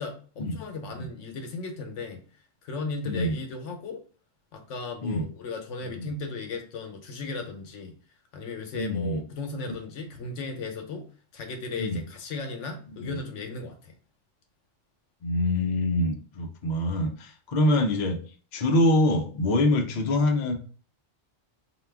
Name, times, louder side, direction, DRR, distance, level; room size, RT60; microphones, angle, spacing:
voice 1, 0.0-2.2 2.6-4.0 4.5-7.9 8.3-11.1 11.3-13.9, left 4 dB, 75° left, 4 dB, 1.0 m, -36 dB
voice 2, 3.1-3.4 5.0-5.3 5.8-6.1 8.7-9.2 11.8-12.0 13.0-13.2 15.2-18.2 18.5-20.6, left 1 dB, 55° left, 3 dB, 0.5 m, -25 dB
2.9 x 2.2 x 3.2 m, 0.39 s
omnidirectional pair, 1.3 m